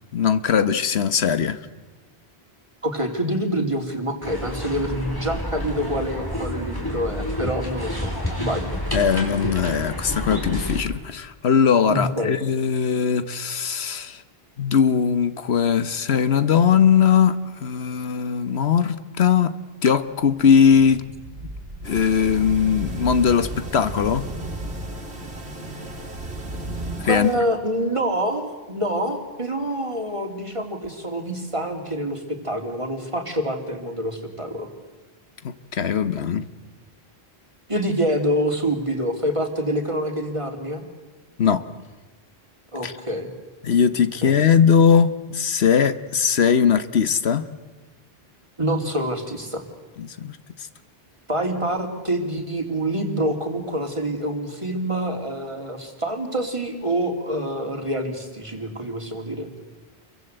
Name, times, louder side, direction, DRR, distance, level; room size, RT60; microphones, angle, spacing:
voice 1, 0.1-1.6 8.9-14.2 14.6-19.6 19.8-21.0 21.8-24.2 27.0-27.3 35.4-36.5 41.4-41.6 42.8-42.9 43.6-47.5 50.0-50.4, left 7 dB, 80° left, 1.4 m, -20 dB
voice 2, 2.8-8.6 11.9-12.4 27.0-34.7 37.7-40.8 42.7-43.3 44.2-44.4 48.6-49.6 51.3-59.5, right 1 dB, 30° right, 3.2 m, -26 dB
sound 1, 4.2-10.8, left 1 dB, 20° left, 4.4 m, -29 dB
sound 2, 20.2-27.0, right 1 dB, 65° right, 2.3 m, -34 dB
sound 3, 21.8-27.4, right 2 dB, 85° right, 2.8 m, -41 dB
28.5 x 23.0 x 8.1 m
omnidirectional pair, 1.1 m